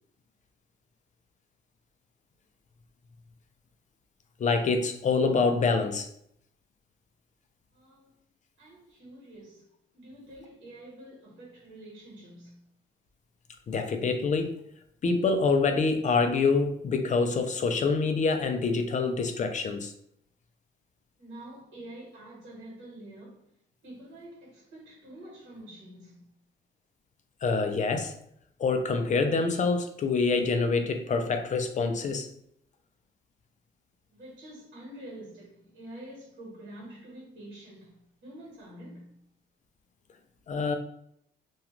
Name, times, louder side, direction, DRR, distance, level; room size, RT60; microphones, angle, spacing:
voice 1, 4.4-6.1 13.7-14.6 15.0-19.9 27.4-28.2 28.6-32.3 40.5-40.8, left 4 dB, 40° left, 0.4 m, -26 dB
voice 2, 7.7-8.1 8.6-9.6 9.9-12.6 21.2-23.4 23.8-26.2 34.1-37.9 38.2-39.1, right 1 dB, 65° right, 1.3 m, -47 dB
2.4 x 2.2 x 2.9 m
cardioid pair, 90°, 20 cm